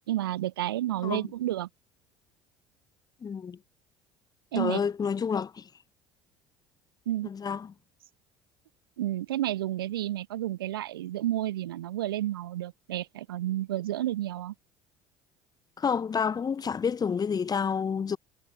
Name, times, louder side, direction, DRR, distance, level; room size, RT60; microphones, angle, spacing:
voice 1, 0.1-1.7 4.5-4.8 7.0-7.3 9.0-14.5, right 14 dB, 80° right, 1.8 m, -31 dB
voice 2, 3.2-3.6 4.5-5.7 7.2-7.7 15.8-18.2, left 6 dB, 35° left, 6.3 m, -29 dB
hypercardioid pair, 65°, 12 cm